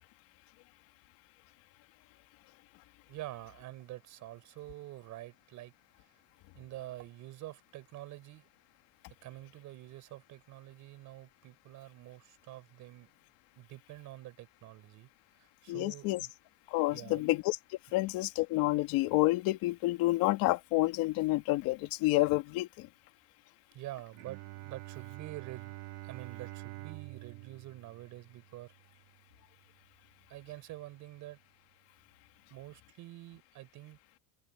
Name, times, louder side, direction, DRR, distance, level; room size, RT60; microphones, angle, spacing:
voice 1, 3.1-5.7 6.5-8.5 9.2-13.1 13.6-15.1 15.4-16.3 16.9-17.3 23.7-25.8 26.0-28.7 30.3-31.4 32.5-34.0, right 16 dB, 40° right, 6.3 m, -47 dB
voice 2, 15.7-16.2 16.7-17.6 17.9-22.9, left 19 dB, 50° left, 2.7 m, -29 dB
Bowed string instrument, 24.1-29.9, right 21 dB, 60° right, 2.5 m, -48 dB
cardioid pair, 175°, 45 cm